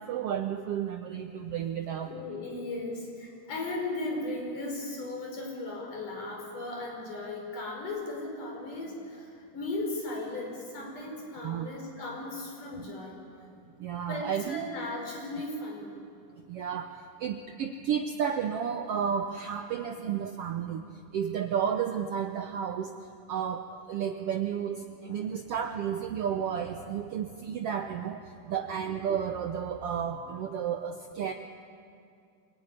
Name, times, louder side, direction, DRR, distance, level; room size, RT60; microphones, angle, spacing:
voice 1, 0.0-2.1 11.4-11.7 12.8-12.9 13.8-14.6 16.5-20.8 21.1-22.9 23.3-31.3, right 8 dB, 90° right, 6 dB, 1.3 m, -32 dB
voice 2, 2.0-13.2 14.1-16.0 25.1-25.4 28.4-28.6, left 2 dB, 70° left, 0 dB, 6.5 m, -37 dB
25.0 x 18.5 x 9.9 m, 2.4 s
omnidirectional pair, 3.8 m